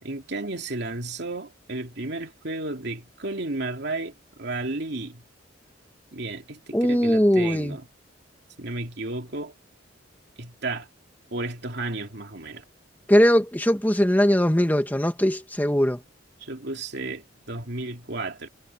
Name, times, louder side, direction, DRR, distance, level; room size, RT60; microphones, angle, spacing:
voice 1, 0.0-5.2 6.1-7.8 8.6-9.5 10.4-10.9 11.3-12.6 16.4-18.5, right 2 dB, 65° right, 2.7 m, -33 dB
voice 2, 6.7-7.8 13.1-16.0, equal, 10° left, 1.9 m, -20 dB
head